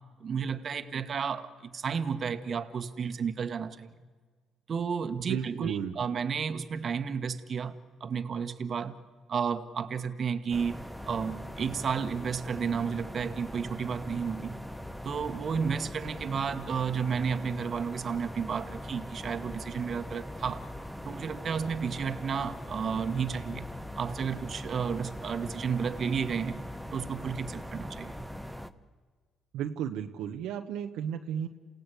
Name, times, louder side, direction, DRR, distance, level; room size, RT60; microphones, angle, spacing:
voice 1, 0.2-3.9 4.7-9.0 9.3-14.6 15.0-20.6 21.0-23.7 24.0-26.6 26.9-28.3, right 6 dB, 50° right, 1.5 m, -32 dB
voice 2, 5.2-5.9 29.5-31.5, right 9 dB, 80° right, 1.1 m, -34 dB
sound 1, 10.5-28.7, equal, ahead, 1.3 m, -41 dB
29.0 x 17.0 x 8.4 m
supercardioid pair, 65°, 0 cm